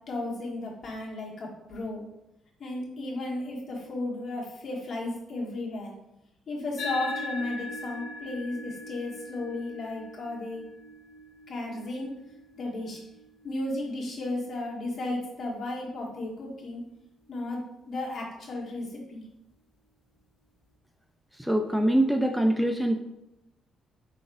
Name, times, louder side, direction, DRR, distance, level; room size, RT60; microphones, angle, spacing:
voice 1, 0.1-2.0 2.6-5.9 6.5-10.6 11.5-12.1 12.5-13.0 13.4-16.8 17.3-19.3, left 2 dB, 50° left, -2 dB, 1.3 m, -34 dB
sound 1, 6.8-15.5, left 2 dB, 80° left, 0.8 m, -41 dB
voice 2, 21.4-23.0, right 1 dB, 5° right, 4 dB, 0.4 m, -24 dB
4.6 x 4.0 x 2.5 m, 0.89 s
cardioid pair, 90°, 0 cm